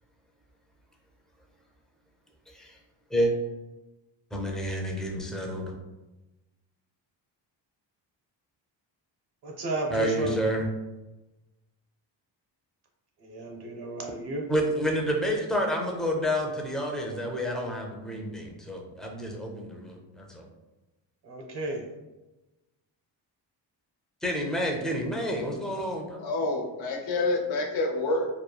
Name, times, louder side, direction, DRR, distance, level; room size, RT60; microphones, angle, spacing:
voice 1, 2.5-2.8 3.1-3.3 4.3-5.7 9.9-10.7 14.5-20.4 24.2-26.3, equal, ahead, 0 dB, 0.3 m, -29 dB
voice 2, 9.4-10.3 13.2-14.5 21.2-21.9, right 2 dB, 60° right, 2 dB, 0.7 m, -33 dB
voice 3, 26.2-28.3, left 2 dB, 85° left, 0 dB, 0.7 m, -27 dB
3.1 x 2.2 x 2.2 m, 1.1 s
cardioid pair, 110°, 44 cm